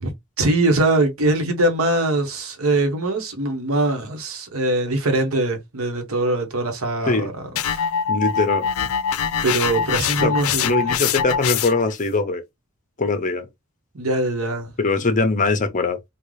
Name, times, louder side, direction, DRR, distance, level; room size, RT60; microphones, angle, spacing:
voice 1, 0.0-7.8 9.4-10.9 13.9-14.7, right 2 dB, 75° right, 1.1 m, -22 dB
sound 1, 7.6-12.0, left 7 dB, 85° left, 0.4 m, -23 dB
voice 2, 8.1-8.9 10.2-10.3 10.6-12.4 13.0-13.5 14.8-16.0, left 3 dB, 35° left, 0.7 m, -21 dB
3.8 x 2.3 x 3.2 m
head